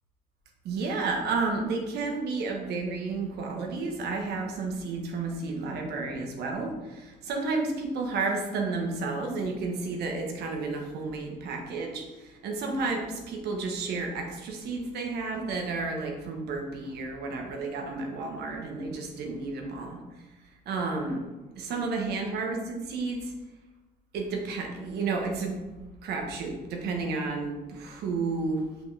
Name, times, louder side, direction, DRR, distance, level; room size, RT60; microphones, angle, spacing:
voice 1, 0.6-20.0 20.6-21.2 21.6-23.3 24.1-25.5 26.0-28.6, right 3 dB, 75° right, 2 dB, 1.2 m, -31 dB
6.0 x 5.2 x 3.3 m, 1.1 s
cardioid pair, 110°, 17 cm